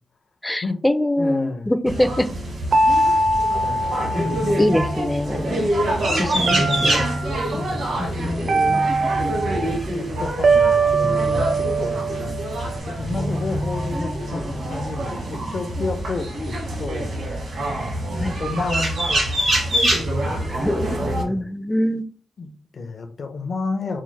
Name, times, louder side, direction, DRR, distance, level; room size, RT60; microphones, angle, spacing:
voice 1, 0.4-2.3 4.2-5.7 6.2-7.0 8.0-8.6 18.2-18.4 20.5-22.1, left 1 dB, 10° left, 11 dB, 0.3 m, -24 dB
voice 2, 1.2-1.7 2.9-3.0 3.6-4.5 6.3-7.1 7.5-8.9 9.7-17.1 17.9-19.5 20.1-20.5 21.1-21.5 22.4-24.0, left 3 dB, 60° left, 6 dB, 0.6 m, -32 dB
sound 1, 1.9-21.2, right 1 dB, 85° right, 1.3 m, -25 dB
sound 2, 2.7-5.1 6.5-7.5 8.5-9.8 10.4-12.8, right 3 dB, 60° right, 0.5 m, -22 dB
4.6 x 2.0 x 3.1 m, 0.42 s
cardioid pair, 95°, 0 cm